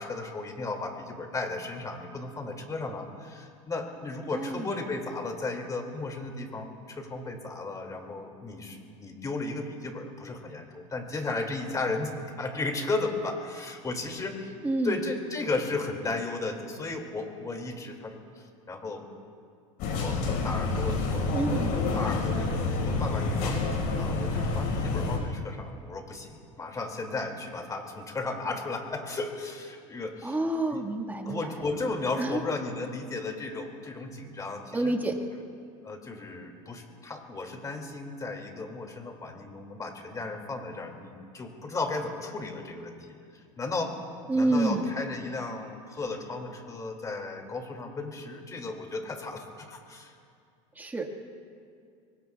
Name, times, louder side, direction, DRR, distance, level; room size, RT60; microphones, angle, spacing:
voice 1, 0.0-14.6 14.8-19.1 19.9-30.4 30.7-30.8 31.3-34.9 35.8-44.0 44.3-50.2, left 3 dB, 20° left, 3 dB, 2.4 m, -35 dB
voice 2, 4.3-4.7 14.6-15.0 21.3-22.2 30.2-31.5 32.2-32.4 34.7-35.2 44.3-45.0 50.8-51.1, right 2 dB, 10° right, 2 dB, 1.7 m, -28 dB
sound 1, 19.8-25.2, left 3 dB, 60° left, 5.0 m, -28 dB
24.5 x 24.5 x 2.3 m, 2.3 s
supercardioid pair, 115°, 17 cm